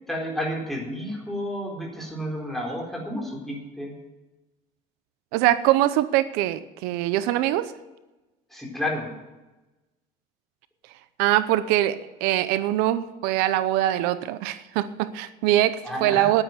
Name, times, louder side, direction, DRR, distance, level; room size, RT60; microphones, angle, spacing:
voice 1, 0.1-4.0 8.5-9.1 15.8-16.3, left 1 dB, ahead, -1 dB, 4.3 m, -31 dB
voice 2, 5.3-7.7 11.2-16.4, right 14 dB, 90° right, 14 dB, 0.7 m, -23 dB
10.5 x 9.8 x 7.8 m, 1.1 s
cardioid pair, 125°, 16 cm